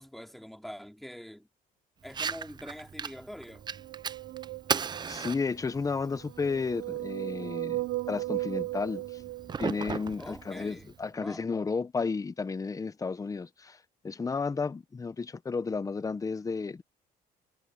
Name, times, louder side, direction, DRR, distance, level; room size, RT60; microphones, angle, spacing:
voice 1, 0.0-1.5 2.0-3.6 10.2-11.4, equal, ahead, 3.1 m, -45 dB
Fire, 2.0-11.0, right 6 dB, 25° right, 0.5 m, -38 dB
sound 1, 3.6-5.3 6.1-10.0, right 18 dB, 80° right, 0.6 m, -36 dB
voice 2, 5.1-9.2 9.6-16.8, left 4 dB, 20° left, 0.9 m, -33 dB
cardioid pair, 110°, 17 cm